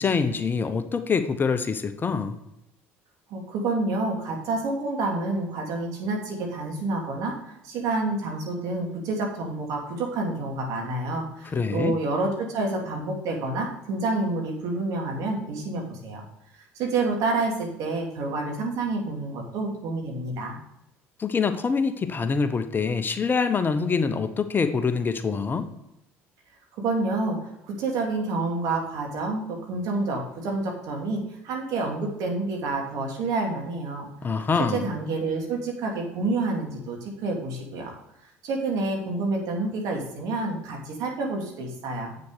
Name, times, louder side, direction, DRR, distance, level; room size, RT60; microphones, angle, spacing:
voice 1, 0.0-2.4 11.5-12.0 21.2-25.7 34.2-34.8, left 5 dB, 30° left, 9 dB, 0.9 m, -25 dB
voice 2, 3.3-16.2 16.7-20.6 26.8-34.1 34.7-37.9 38.4-42.2, right 3 dB, 65° right, 1 dB, 2.9 m, -28 dB
8.0 x 6.8 x 4.8 m, 0.85 s
supercardioid pair, 75°, 7 cm